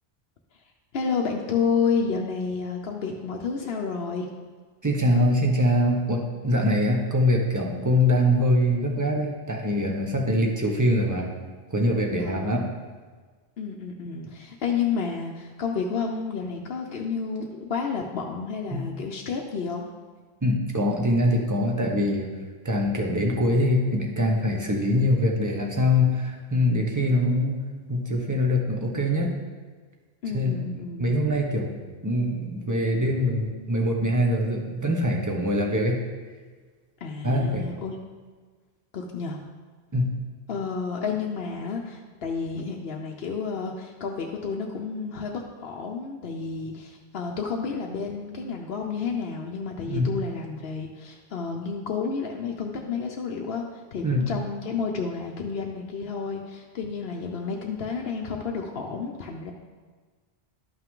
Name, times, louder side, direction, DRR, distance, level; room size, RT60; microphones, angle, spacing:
voice 1, 0.9-4.3 12.2-12.7 13.6-19.9 30.2-31.1 37.0-38.0 38.9-39.4 40.5-59.5, left 5 dB, 70° left, 0 dB, 0.9 m, -30 dB
voice 2, 4.8-11.3 11.7-12.7 18.7-18.8 20.4-22.3 22.6-27.6 27.9-29.3 30.3-30.6 31.0-31.7 32.0-36.0 37.2-37.6 39.9-40.1 49.9-50.1 54.0-54.3, left 1 dB, 20° right, 0 dB, 1.0 m, -23 dB
12.0 x 5.7 x 3.7 m, 1.5 s
omnidirectional pair, 1.1 m